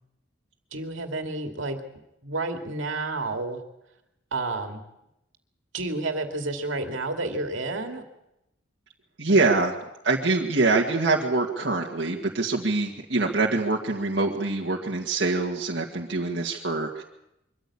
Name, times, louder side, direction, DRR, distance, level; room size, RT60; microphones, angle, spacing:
voice 1, 0.7-1.8 2.2-3.6 4.3-4.8 5.7-8.0, right 2 dB, 75° right, 5 dB, 2.4 m, -30 dB
voice 2, 9.2-9.7 10.0-17.0, right 3 dB, 55° right, -2 dB, 2.0 m, -24 dB
23.5 x 14.5 x 8.6 m, 0.86 s
head